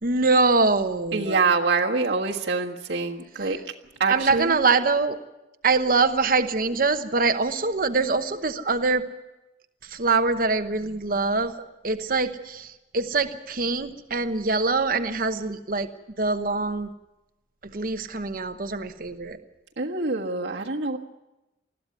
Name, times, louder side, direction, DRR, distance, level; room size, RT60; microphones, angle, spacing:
voice 1, 0.0-1.4 4.1-5.2 5.6-9.0 9.9-11.5 11.8-15.9 16.2-16.9 17.7-19.4, right 3 dB, 50° right, 8 dB, 1.0 m, -24 dB
voice 2, 1.1-3.6 4.0-4.5 19.8-21.0, right 4 dB, 80° right, -4 dB, 1.6 m, -25 dB
21.0 x 14.5 x 9.3 m, 0.99 s
head